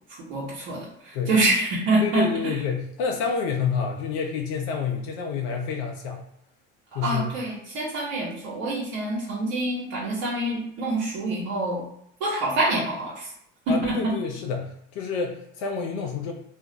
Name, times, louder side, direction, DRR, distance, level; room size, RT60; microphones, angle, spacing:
voice 1, 0.3-2.5 6.9-11.8 12.2-13.3 13.7-14.1, right 2 dB, 75° right, -7 dB, 1.0 m, -26 dB
voice 2, 2.0-6.2 6.9-7.3 13.7-16.3, left 6 dB, 75° left, 2 dB, 0.6 m, -28 dB
2.4 x 2.1 x 3.8 m, 0.71 s
supercardioid pair, 80°, 33 cm